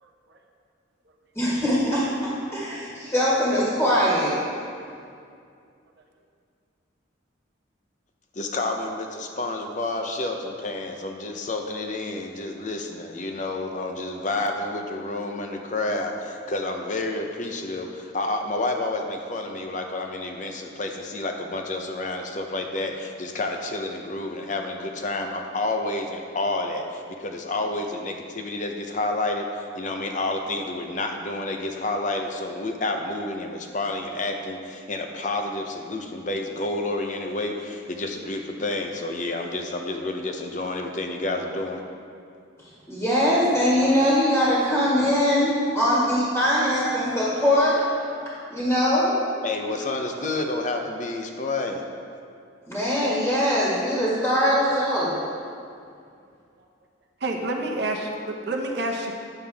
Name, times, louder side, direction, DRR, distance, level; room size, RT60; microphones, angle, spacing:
voice 1, 0.0-0.4 57.2-59.1, right 2 dB, 60° right, 1 dB, 0.8 m, -29 dB
voice 2, 1.4-2.0 2.5-4.3 42.9-47.8 48.5-49.1 52.7-55.1, equal, 10° left, -8 dB, 1.7 m, -21 dB
voice 3, 8.3-41.8 49.4-51.8, left 2 dB, 40° left, 3 dB, 0.6 m, -29 dB
9.3 x 6.9 x 3.5 m, 2.4 s
head